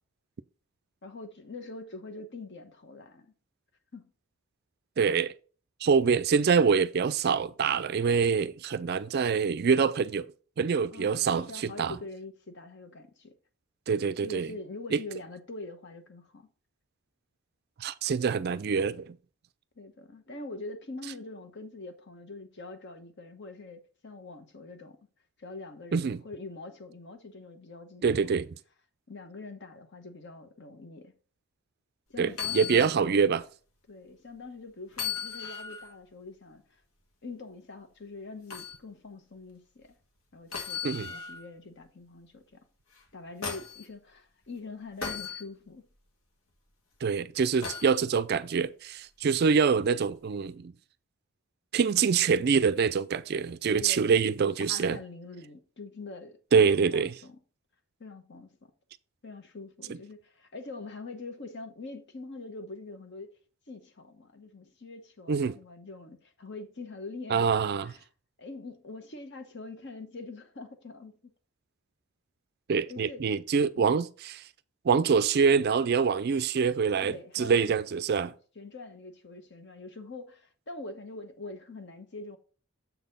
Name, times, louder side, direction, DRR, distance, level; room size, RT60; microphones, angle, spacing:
voice 1, 1.0-3.3 3.9-4.1 10.9-13.3 14.2-16.5 19.8-25.1 25.4-28.2 29.1-31.1 32.1-33.2 33.9-36.8 37.2-39.9 40.3-42.6 43.1-45.9 53.8-54.1 54.6-57.4 58.0-58.7 59.2-63.3 63.7-68.0 68.4-71.2 72.9-73.2 73.8-74.0 77.0-77.8 78.5-82.4, left 3 dB, 50° left, 1.0 m, -44 dB
voice 2, 5.0-5.3 5.8-10.3 10.6-11.9 13.9-14.5 14.9-15.0 17.8-19.2 25.9-26.2 28.0-28.5 32.2-33.4 40.8-41.1 47.0-50.7 51.7-55.0 56.5-57.1 59.9-60.0 65.3-65.6 67.3-67.9 72.7-74.4 74.8-78.3, right 6 dB, 45° right, 0.3 m, -25 dB
sound 1, 32.3-33.0 33.4-33.5 34.9-35.9 38.5-38.8 40.5-41.5 42.9-43.8 45.0-45.4 47.6-48.0 49.8-49.9, left 6 dB, 70° left, 1.5 m, -36 dB
7.0 x 4.1 x 5.3 m
head